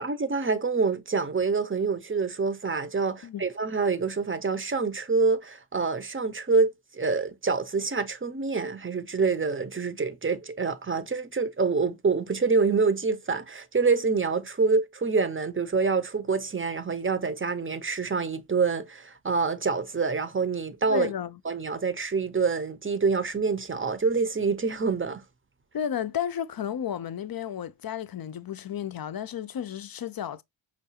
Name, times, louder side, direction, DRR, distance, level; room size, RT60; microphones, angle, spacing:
voice 1, 0.0-21.1 21.4-25.2, right 4 dB, 25° right, 0.6 m, -26 dB
voice 2, 20.9-21.4 25.7-30.4, left 9 dB, 50° left, 0.5 m, -32 dB
5.6 x 2.3 x 2.8 m
wide cardioid pair, 100°, 47 cm